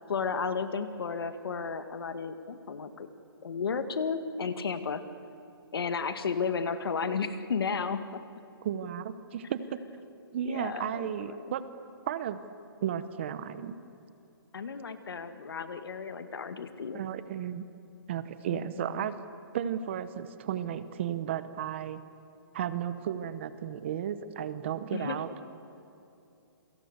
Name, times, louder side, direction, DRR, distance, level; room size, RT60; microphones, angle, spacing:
voice 1, 0.1-3.1 3.4-5.0 5.7-8.2 10.4-11.5 14.5-17.0 18.5-19.1 24.9-25.2, left 5 dB, 70° left, 10 dB, 2.0 m, -33 dB
voice 2, 8.6-9.8 10.3-11.6 12.1-12.4 12.8-13.8 16.9-17.7 18.1-19.2 19.5-22.0 22.5-25.3, right 9 dB, 30° right, 13 dB, 1.0 m, -34 dB
28.5 x 24.0 x 8.1 m, 2.7 s
hypercardioid pair, 170°, 13 cm